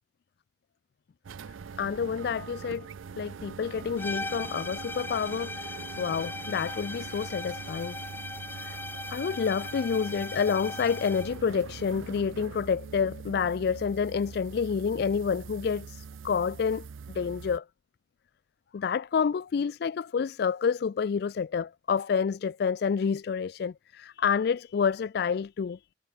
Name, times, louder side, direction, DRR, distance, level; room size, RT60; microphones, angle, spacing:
sound 1, 1.2-17.6, right 5 dB, 90° right, 0.4 m, -43 dB
sound 2, 1.6-11.2, left 2 dB, 85° left, 4.7 m, -68 dB
voice 1, 1.8-2.9 3.2-8.0 8.6-8.8 9.1-16.9 17.1-17.6 18.7-25.8, left 6 dB, 55° left, 0.3 m, -29 dB
sound 3, 4.0-11.4, left 2 dB, 10° left, 0.8 m, -39 dB
head